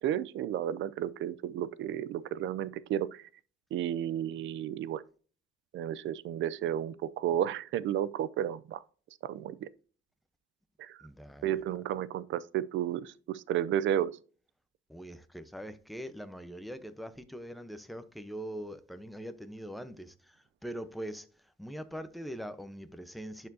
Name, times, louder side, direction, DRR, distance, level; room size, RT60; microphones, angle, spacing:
voice 1, 0.0-3.2 3.7-5.0 5.7-8.8 9.2-9.7 10.8-11.0 11.4-14.2, right 11 dB, 75° right, 0.5 m, -32 dB
voice 2, 11.0-11.5 14.9-20.4 20.6-21.3 21.6-23.5, equal, ahead, 0.9 m, -42 dB
11.0 x 4.6 x 2.7 m
cardioid pair, 90°, 20 cm